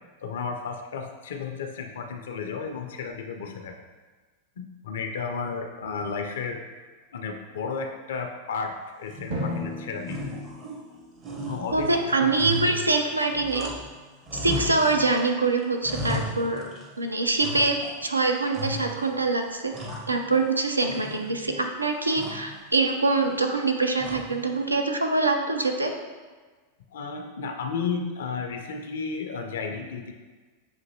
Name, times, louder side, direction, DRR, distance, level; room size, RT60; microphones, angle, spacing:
voice 1, 0.2-3.7 4.6-6.6 7.1-10.2 11.5-12.3 26.9-30.1, left 5 dB, 60° left, 4 dB, 0.4 m, -33 dB
sound 1, 9.1-9.7 10.0-11.0 11.2-14.0 14.3-15.3 15.6-17.0 17.4-18.1 18.5-19.2 19.5-20.6 20.9-21.6 22.1-22.6 24.0-24.5, equal, 30° right, 0.7 m, -35 dB
Drum, 9.3-11.8, left 1 dB, 60° right, 1.1 m, -35 dB
voice 2, 11.7-13.7 14.3-16.6 17.0-19.7 20.1-25.9, right 3 dB, 80° right, 4 dB, 0.4 m, -24 dB
6.4 x 2.6 x 2.7 m, 1.4 s
figure-of-eight pair, 90°, 0 cm